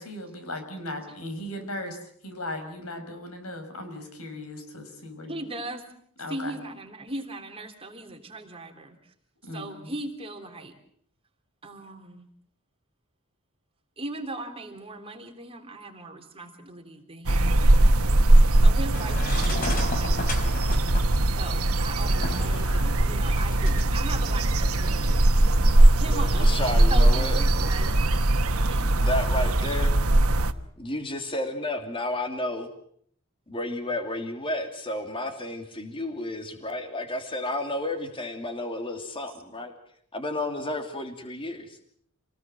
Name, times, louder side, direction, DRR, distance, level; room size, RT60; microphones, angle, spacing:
voice 1, 0.0-5.4 6.2-6.6 9.4-9.9, left 1 dB, 90° left, 7 dB, 5.6 m, -37 dB
voice 2, 5.3-5.8 6.3-9.0 9.5-10.7 11.6-12.3 14.0-17.9 18.6-20.6 21.3-25.3 25.9-27.9 28.5-29.0, right 2 dB, 25° right, 4 dB, 3.4 m, -38 dB
sound 1, 17.3-30.5, right 1 dB, 85° right, 1.3 m, -20 dB
sound 2, 18.9-23.9, left 2 dB, 40° left, 4.6 m, -35 dB
voice 3, 26.0-27.7 29.0-29.9 30.8-32.7 33.5-39.7 40.1-41.7, left 1 dB, 25° left, 5 dB, 2.9 m, -32 dB
28.0 x 19.0 x 7.6 m, 0.64 s
head